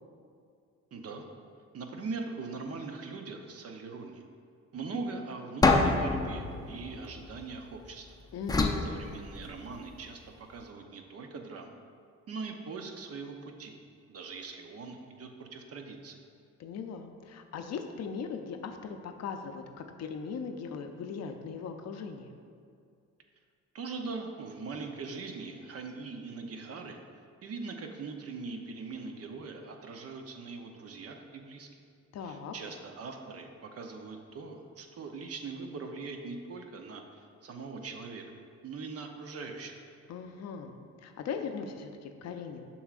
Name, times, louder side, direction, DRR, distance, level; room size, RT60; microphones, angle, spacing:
voice 1, 0.9-1.2 1.7-4.2 4.7-8.1 8.8-11.7 12.3-13.8 14.1-16.2 23.7-27.0 27.4-31.7 32.2-38.2 38.6-39.8, right 4 dB, 55° right, 4 dB, 0.7 m, -41 dB
sound 1, 5.6-7.8 8.5-9.9, left 3 dB, 15° left, 0.5 m, -28 dB
voice 2, 8.3-8.9 16.6-22.3 32.1-32.5 40.1-40.7 41.0-42.7, left 6 dB, 60° left, 6 dB, 0.6 m, -39 dB
6.9 x 6.1 x 2.5 m, 2.3 s
cardioid pair, 90°, 30 cm